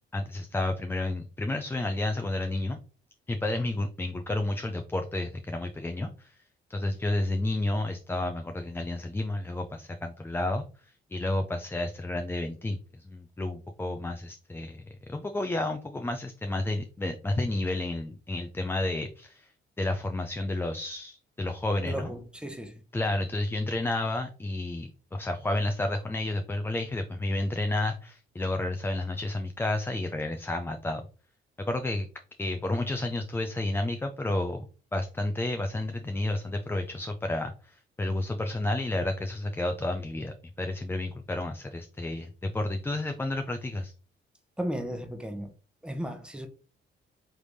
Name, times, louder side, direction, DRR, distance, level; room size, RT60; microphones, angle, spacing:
voice 1, 0.1-2.8 3.3-6.3 6.7-10.6 11.1-14.8 15.1-19.5 19.8-22.1 22.9-31.0 31.7-32.1 32.4-43.9, left 2 dB, 10° left, 0.4 m, -31 dB
voice 2, 21.8-22.7 44.6-45.5 45.8-46.5, right 1 dB, 5° right, 0.9 m, -35 dB
3.3 x 3.3 x 4.0 m
cardioid pair, 90°, 20 cm